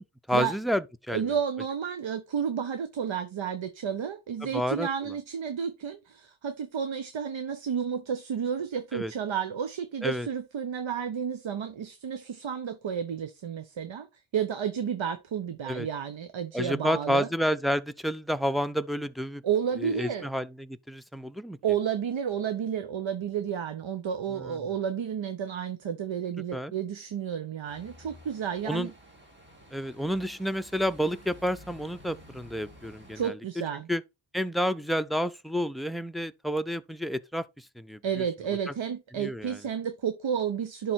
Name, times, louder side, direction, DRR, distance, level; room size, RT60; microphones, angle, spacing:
voice 1, 0.0-1.2 4.4-5.1 8.9-9.1 10.0-10.3 15.7-15.9 16.5-19.4 19.8-21.6 24.3-24.6 26.5-26.7 28.6-28.9 29.7-33.4 33.9-34.0 34.3-38.2 39.1-39.6, equal, ahead, 0.5 m, -30 dB
voice 2, 1.1-14.1 14.3-17.3 19.4-20.3 21.6-28.9 33.1-33.9 38.0-40.9, right 8 dB, 70° right, 0.9 m, -31 dB
sound 1, 27.7-33.3, equal, 25° right, 2.5 m, -52 dB
11.0 x 3.9 x 4.3 m
cardioid pair, 65°, 47 cm